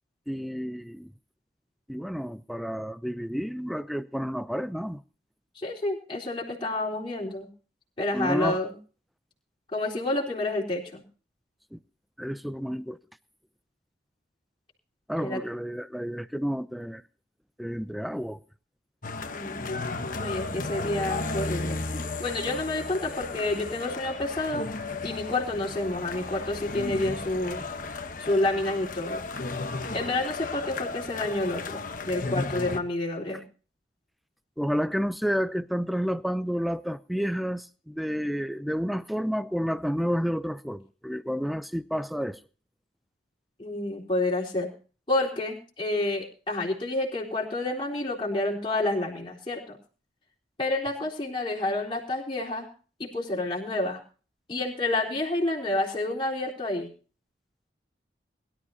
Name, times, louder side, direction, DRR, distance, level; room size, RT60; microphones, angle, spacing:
voice 1, 0.3-1.1 1.9-5.0 8.1-8.6 11.7-11.8 12.2-13.0 15.1-17.0 17.6-18.4 34.6-42.4, equal, ahead, 0.5 m, -30 dB
voice 2, 5.6-7.5 8.0-8.7 9.7-11.0 15.2-15.4 19.1-19.7 20.1-24.7 25.0-27.6 28.2-29.2 29.9-33.4 43.6-44.7 45.1-49.8 50.6-52.7 53.0-54.0 54.5-56.9, left 2 dB, 25° left, 3.9 m, -29 dB
sound 1, 19.0-32.8, left 3 dB, 45° left, 1.1 m, -34 dB
22.5 x 12.5 x 2.8 m
head